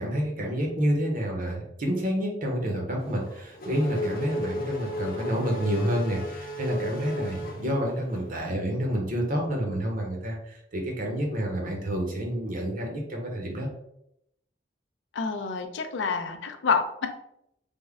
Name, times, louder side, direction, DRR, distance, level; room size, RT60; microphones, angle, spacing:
voice 1, 0.0-13.7, equal, 50° right, 0 dB, 0.8 m, -29 dB
Race car auto racing / Accelerating revving vroom, 3.0-8.3, left 1 dB, 50° left, 0.7 m, -34 dB
voice 2, 15.1-17.1, left 5 dB, 90° left, 6 dB, 0.5 m, -28 dB
3.5 x 2.1 x 3.5 m, 0.77 s
head